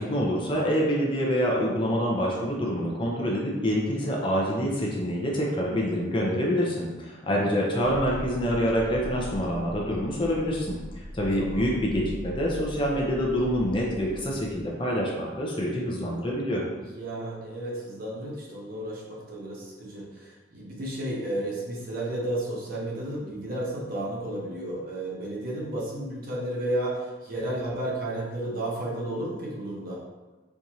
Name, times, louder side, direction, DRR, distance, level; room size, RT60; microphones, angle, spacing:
voice 1, 0.0-10.8 11.1-16.6, equal, 25° left, -3 dB, 0.6 m, -26 dB
sound 1, 7.8-14.7, equal, 10° right, 0.9 m, -40 dB
voice 2, 11.4-11.7 16.8-30.0, right 1 dB, 50° right, -4 dB, 0.8 m, -32 dB
4.5 x 2.5 x 2.8 m, 1.2 s
head